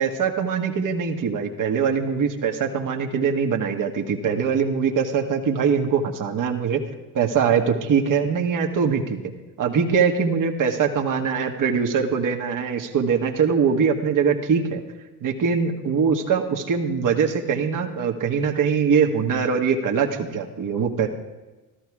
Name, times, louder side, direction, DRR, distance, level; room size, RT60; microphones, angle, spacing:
voice 1, 0.0-6.8 7.1-9.2 9.6-14.8 15.2-21.1, right 6 dB, 40° right, 3 dB, 1.8 m, -22 dB
14.5 x 13.5 x 4.9 m, 1.1 s
hypercardioid pair, 80°, 47 cm